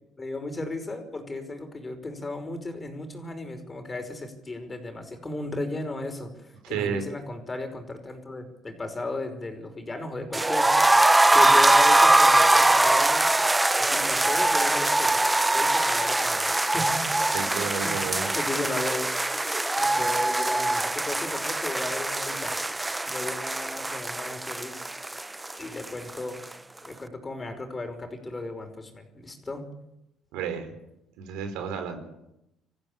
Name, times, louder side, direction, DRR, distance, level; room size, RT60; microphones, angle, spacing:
voice 1, 0.2-11.0 11.3-13.3 13.7-15.2 15.5-17.0 17.4-19.1 19.8-22.5 23.1-24.7 25.6-26.4 26.8-29.7, left 2 dB, 25° left, 6 dB, 5.4 m, -35 dB
voice 2, 6.6-7.0 17.3-18.3 30.3-30.7 31.2-32.0, right 7 dB, 90° right, 7 dB, 4.7 m, -31 dB
sound 1, 10.3-26.2 26.4-26.5 26.8-26.9, right 2 dB, 10° right, 0.7 m, -22 dB
26.5 x 15.0 x 8.8 m, 0.88 s
cardioid pair, 100°, 0 cm